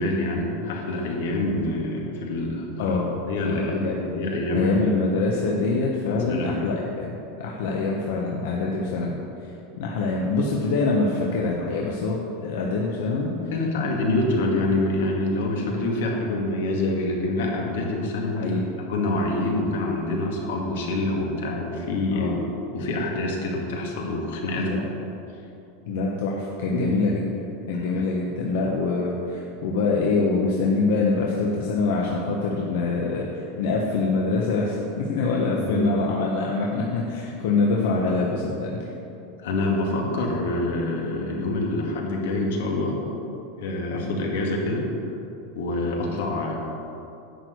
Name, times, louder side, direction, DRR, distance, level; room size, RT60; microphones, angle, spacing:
voice 1, 0.0-3.0 3.3-5.0 6.1-6.6 13.2-18.6 18.9-22.3 22.7-24.7 26.7-27.0 27.7-27.9 35.6-36.0 39.4-43.0 43.6-44.9 45.5-46.6, left 2 dB, 90° left, 0 dB, 2.1 m, -26 dB
voice 2, 2.8-3.1 3.4-4.0 4.5-9.2 9.8-13.3 18.4-18.6 22.1-22.4 24.6-24.9 25.9-27.2 27.7-38.8, left 3 dB, 70° left, -2 dB, 1.1 m, -25 dB
10.5 x 4.7 x 8.1 m, 2.8 s
supercardioid pair, 170°, 0 cm